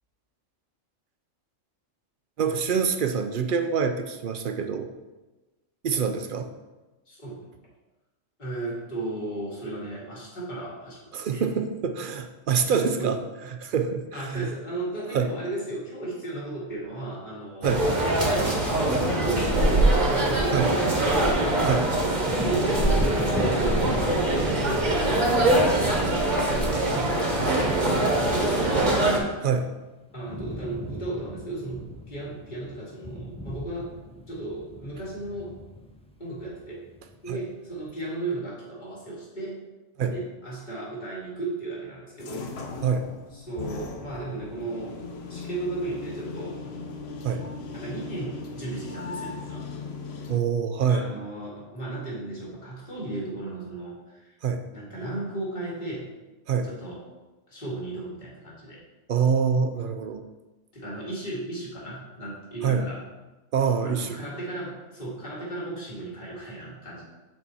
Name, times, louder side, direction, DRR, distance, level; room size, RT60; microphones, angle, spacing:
voice 1, 2.4-4.9 5.8-6.5 11.1-13.2 13.5-14.5 15.1-15.3 17.6-17.9 20.5-20.7 21.6-21.9 29.4-29.7 37.3-37.4 40.0-40.1 42.8-43.1 47.2-47.4 50.3-51.1 54.4-54.6 56.5-56.7 59.1-60.2 62.6-62.9 63.5-64.2, right 6 dB, 60° right, 7 dB, 0.5 m, -25 dB
voice 2, 7.1-7.4 8.4-11.5 13.0-13.2 14.1-17.8 18.3-21.3 22.1-25.4 26.5-29.0 30.1-33.9 34.3-35.6 36.2-36.8 37.2-39.7 40.1-42.5 43.3-45.0 45.3-46.7 47.7-49.7 50.9-54.3 54.7-56.1 56.6-57.1 57.5-58.8 60.7-63.0 63.8-67.0, right 2 dB, 35° left, -6 dB, 2.0 m, -35 dB
sound 1, 17.6-29.2, right 1 dB, 35° right, 1.1 m, -23 dB
Wind / Thunder, 22.2-29.8 30.1-37.3 37.8-37.9, left 1 dB, 10° left, 0.3 m, -38 dB
sound 2, 42.2-50.4, left 4 dB, 60° left, 0.9 m, -38 dB
7.2 x 4.4 x 4.2 m, 1.1 s
omnidirectional pair, 1.3 m